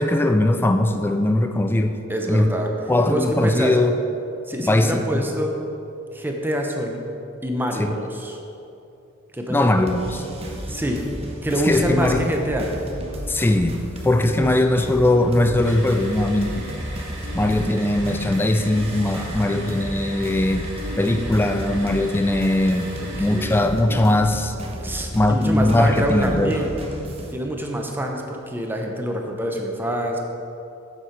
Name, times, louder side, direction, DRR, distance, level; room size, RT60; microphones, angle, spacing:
voice 1, 0.0-2.0 2.3-2.5 2.9-3.9 4.6-5.2 7.8-7.9 9.5-10.2 11.6-12.3 13.3-13.8 14.0-16.7 17.3-20.7 21.0-22.9 23.2-24.6 25.1-26.6, left 1 dB, 10° left, 7 dB, 0.3 m, -20 dB
voice 2, 2.1-2.7 3.1-3.8 4.5-5.5 6.1-7.1 7.4-8.4 9.3-9.9 10.7-11.0 11.4-12.7 14.4-14.5 19.1-19.6 23.0-23.6 24.8-26.7 27.3-30.2, equal, 10° right, 1 dB, 0.7 m, -26 dB
sound 1, 9.9-27.3, equal, 30° right, 1.1 m, -33 dB
sound 2, 15.6-23.6, right 1 dB, 60° right, 2.0 m, -39 dB
7.6 x 7.3 x 5.1 m, 2.8 s
head